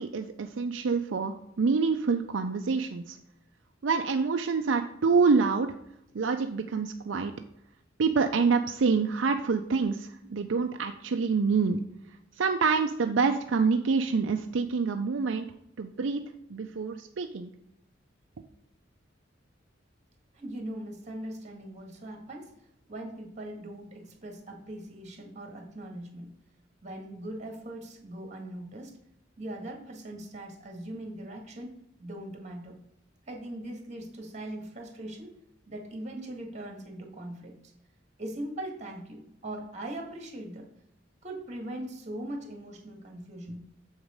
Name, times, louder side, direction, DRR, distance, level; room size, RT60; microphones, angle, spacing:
voice 1, 0.0-3.2 3.8-5.7 6.1-7.3 8.0-11.8 12.4-15.5 15.8-16.2 16.5-17.5, right 4 dB, 75° right, 5 dB, 0.5 m, -26 dB
voice 2, 20.3-22.6 22.9-26.3 26.8-29.0 29.4-32.8 33.3-35.4 35.7-37.7 38.2-40.7 41.2-43.7, right 1 dB, 35° right, 2 dB, 1.9 m, -40 dB
7.3 x 4.8 x 5.2 m, 0.80 s
head